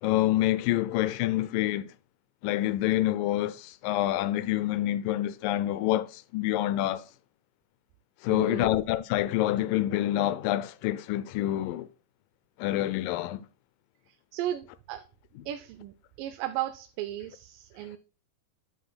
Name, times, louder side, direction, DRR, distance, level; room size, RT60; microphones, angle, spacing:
voice 1, 0.0-1.9 2.4-7.0 8.2-11.9 12.6-13.5, left 14 dB, 90° left, 2.2 m, -27 dB
voice 2, 8.3-8.8 14.1-15.0 15.5-18.0, right 13 dB, 85° right, 2.3 m, -35 dB
8.2 x 7.9 x 2.2 m
omnidirectional pair, 3.8 m